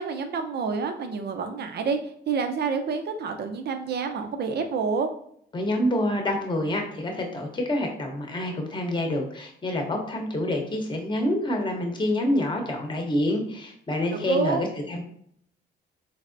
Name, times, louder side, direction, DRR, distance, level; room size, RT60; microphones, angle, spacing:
voice 1, 0.0-5.1 14.3-14.6, right 5 dB, 55° right, 6 dB, 0.6 m, -28 dB
voice 2, 5.5-15.0, left 1 dB, 25° left, 2 dB, 0.9 m, -27 dB
3.4 x 3.3 x 2.6 m, 0.67 s
cardioid pair, 90°, 20 cm